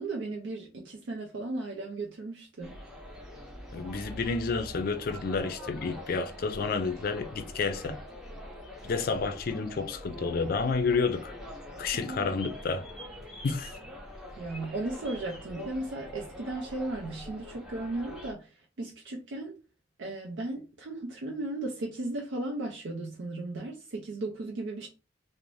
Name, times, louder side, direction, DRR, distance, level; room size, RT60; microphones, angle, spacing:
voice 1, 0.0-2.8 11.9-12.4 14.4-19.6 20.0-24.9, right 2 dB, 90° right, 0.5 m, -36 dB
sound 1, 2.6-18.3, left 1 dB, 5° right, 0.5 m, -44 dB
voice 2, 3.7-8.0 8.8-11.3 11.8-12.8 13.4-13.7, left 4 dB, 55° left, 0.4 m, -30 dB
2.5 x 2.0 x 3.1 m
head